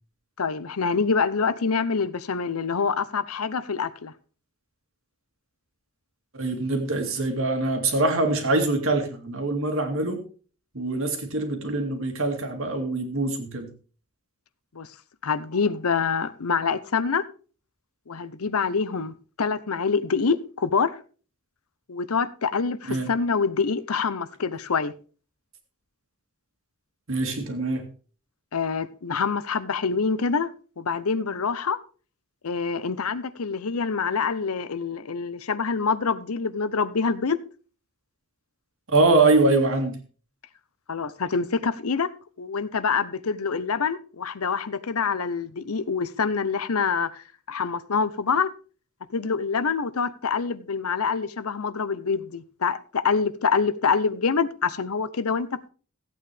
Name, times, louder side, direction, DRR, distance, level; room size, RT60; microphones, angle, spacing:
voice 1, 0.4-4.1 14.7-14.9 15.2-17.2 18.1-21.0 21.9-24.9 28.5-30.5 30.8-31.8 32.4-37.4 40.9-42.1 42.4-48.5 49.1-55.7, left 5 dB, 80° left, 0.8 m, -26 dB
voice 2, 6.3-10.2 10.7-13.7 22.9-23.1 27.1-27.8 38.9-40.0, right 2 dB, 65° right, 2.3 m, -23 dB
15.5 x 8.6 x 3.4 m
head